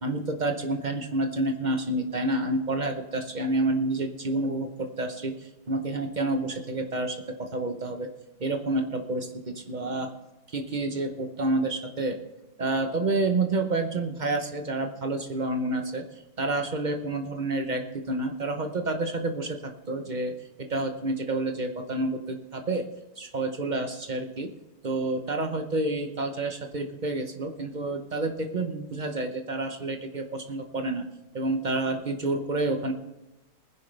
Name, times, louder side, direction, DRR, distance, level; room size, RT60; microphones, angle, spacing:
voice 1, 0.0-8.1 8.4-10.1 10.5-12.2 12.6-16.0 16.4-19.6 19.9-22.9 23.2-24.5 24.8-31.0 31.3-32.9, right 2 dB, 50° right, 5 dB, 0.5 m, -29 dB
20.0 x 10.0 x 3.3 m, 0.98 s
omnidirectional pair, 2.1 m